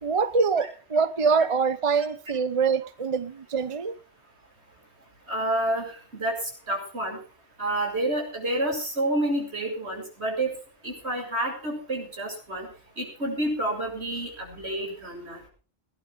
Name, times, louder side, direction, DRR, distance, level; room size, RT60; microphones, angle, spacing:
voice 1, 0.0-4.0, right 5 dB, 35° right, 0.8 m, -24 dB
voice 2, 5.3-6.4 6.7-7.2 7.6-10.5 10.8-12.7 13.0-15.4, right 1 dB, 80° right, 7.4 m, -29 dB
19.0 x 11.0 x 5.1 m
omnidirectional pair, 1.1 m